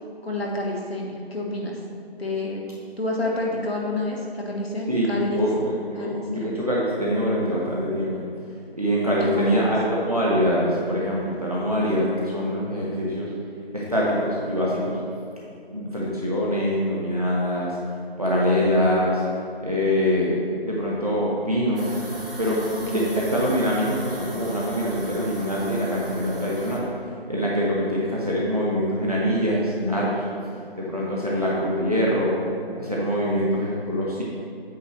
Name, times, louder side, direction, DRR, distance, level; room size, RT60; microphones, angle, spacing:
voice 1, 0.2-1.8 2.2-2.6 3.0-5.4 5.9-6.6 9.3-9.7 22.7-23.2 33.6-33.7, left 1 dB, 70° left, -2 dB, 1.5 m, -29 dB
voice 2, 4.9-8.1 8.8-13.3 13.7-15.0 15.7-17.8 18.2-19.2 19.6-21.9 22.4-26.8 27.3-30.2 30.8-32.4 32.8-34.2, equal, 35° right, -5 dB, 1.0 m, -24 dB
sound 1, 21.8-26.8, right 1 dB, 60° right, 1.6 m, -38 dB
8.5 x 7.6 x 3.1 m, 2.6 s
figure-of-eight pair, 180°, 32 cm